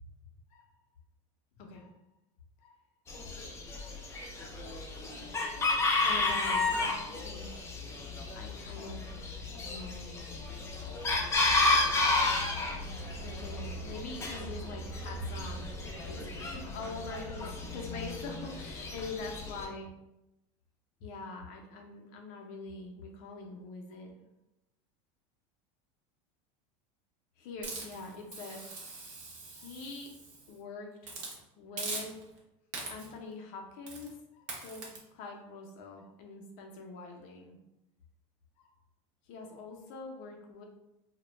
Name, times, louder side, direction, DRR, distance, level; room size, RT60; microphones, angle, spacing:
voice 1, 1.6-1.9 2.6-2.8 3.8-4.0 5.8-7.8 8.3-9.1 9.5-10.6 13.2-15.7 16.0-19.9 21.0-24.1 27.4-28.6 29.5-30.1 30.5-31.1 31.5-32.2 32.9-37.6 38.6-38.7 39.2-40.6, left 3 dB, 55° left, 1 dB, 0.6 m, -44 dB
Chicken rooster, 3.1-19.7, left 2 dB, 15° left, 0.4 m, -32 dB
Hiss, 27.6-30.5 31.0-31.4 31.8-32.4 32.7-33.2 33.9-34.1 34.5-35.0, right 3 dB, 50° right, 0.7 m, -42 dB
2.2 x 2.1 x 3.0 m, 0.89 s
supercardioid pair, 130°, 16 cm